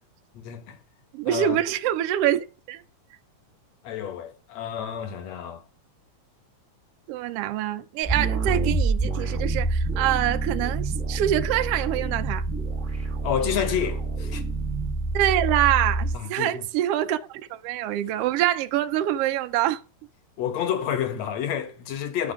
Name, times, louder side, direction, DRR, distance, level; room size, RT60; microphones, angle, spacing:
voice 1, 0.3-0.8 1.3-1.6 3.8-5.6 13.2-14.4 16.1-16.7 20.4-22.3, left 9 dB, 65° left, 2.4 m, -29 dB
voice 2, 1.1-2.8 7.1-12.4 15.1-19.8, right 12 dB, 80° right, 1.3 m, -25 dB
sound 1, 8.0-16.2, right 3 dB, 10° right, 0.6 m, -27 dB
11.0 x 5.0 x 4.9 m
omnidirectional pair, 3.3 m